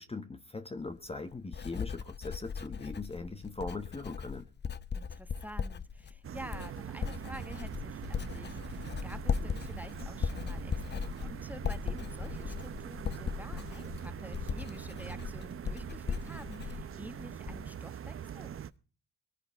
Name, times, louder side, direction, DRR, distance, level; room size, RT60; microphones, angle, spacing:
voice 1, 0.0-4.5, left 3 dB, 20° left, 1.1 m, -40 dB
Writing, 0.8-17.8 18.1-18.6, left 6 dB, 35° left, 0.8 m, -38 dB
voice 2, 4.9-18.6, right 1 dB, 5° right, 1.4 m, -49 dB
sound 1, 6.2-18.7, right 9 dB, 45° right, 0.8 m, -43 dB
21.0 x 10.0 x 4.6 m
cardioid pair, 90°, 30 cm